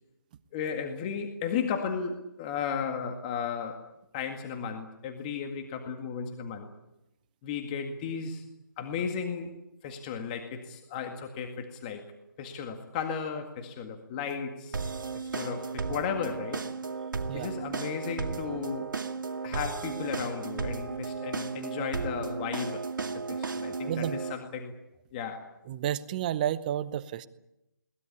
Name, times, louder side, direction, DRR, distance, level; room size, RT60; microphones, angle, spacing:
voice 1, 0.5-6.7 7.4-8.5 8.8-9.5 9.8-12.1 12.4-14.8 15.1-16.7 17.3-19.0 19.4-24.8 25.1-25.5, left 6 dB, 20° left, 5 dB, 1.9 m, -35 dB
sound 1, 14.7-24.3, right 4 dB, 65° right, 2.1 m, -34 dB
voice 2, 23.9-24.2 25.7-27.3, right 11 dB, 20° right, 15 dB, 0.8 m, -31 dB
22.5 x 19.5 x 9.7 m, 0.91 s
figure-of-eight pair, 160°, 12 cm